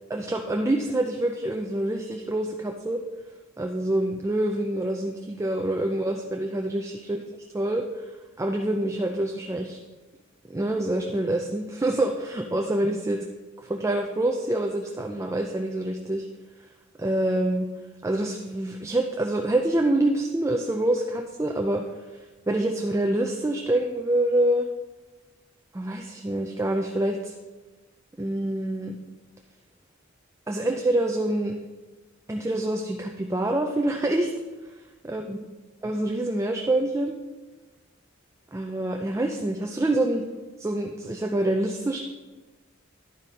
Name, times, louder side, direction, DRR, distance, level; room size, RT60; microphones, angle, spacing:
voice 1, 0.1-3.0 3.6-8.0 8.4-9.8 10.5-13.3 13.6-16.3 17.0-17.7 18.0-21.8 22.5-24.7 25.7-27.3 28.2-29.0 30.5-31.5 32.3-34.3 35.0-35.4 35.8-37.2 38.5-40.2 40.6-42.0, right 1 dB, 15° right, 2 dB, 0.4 m, -26 dB
10.5 x 5.1 x 4.2 m, 1.2 s
head